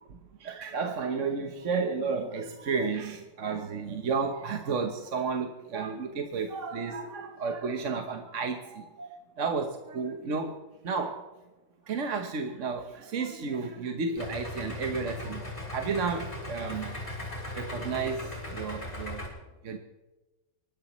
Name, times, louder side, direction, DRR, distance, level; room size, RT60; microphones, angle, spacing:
voice 1, 0.4-10.6 10.8-11.2 11.9-15.4 15.7-17.0 17.5-19.3 19.7-19.8, right 5 dB, 45° right, 4 dB, 1.2 m, -32 dB
Idling, 14.2-19.3, left 1 dB, 20° left, 4.1 m, -38 dB
24.5 x 12.5 x 3.1 m, 1.1 s
omnidirectional pair, 2.0 m